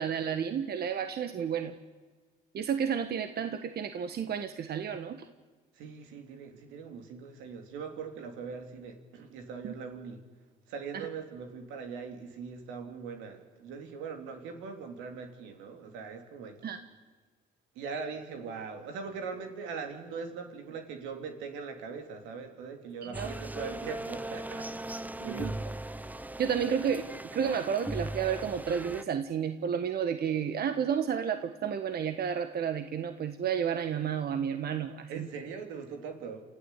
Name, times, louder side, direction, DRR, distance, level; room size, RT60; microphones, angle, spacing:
voice 1, 0.0-1.7 2.5-5.3 9.6-9.7 10.9-11.1 16.6-16.8 23.0-23.3 25.2-25.5 26.4-27.1 27.3-35.3, right 8 dB, 55° right, 9 dB, 1.4 m, -31 dB
voice 2, 5.7-10.2 10.7-16.7 17.7-25.6 35.1-36.4, right 5 dB, 85° right, 5 dB, 2.9 m, -41 dB
sound 1, 23.1-29.0, right 1 dB, 10° right, 0.9 m, -38 dB
28.0 x 15.0 x 8.3 m, 1.4 s
supercardioid pair, 65°, 19 cm